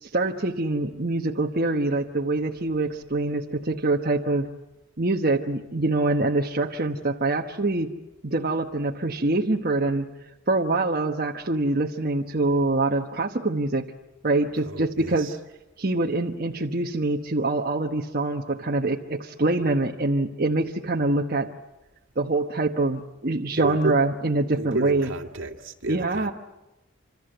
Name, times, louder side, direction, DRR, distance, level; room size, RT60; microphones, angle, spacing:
voice 1, 0.0-4.5 5.0-7.9 8.2-10.1 10.5-13.8 14.2-15.4 15.8-21.5 22.2-25.1 25.9-26.3, right 2 dB, 45° right, 1 dB, 1.2 m, -25 dB
voice 2, 14.7-15.4 23.5-24.0 24.5-26.3, right 2 dB, 70° right, 4 dB, 2.3 m, -31 dB
26.5 x 26.5 x 7.9 m, 0.98 s
head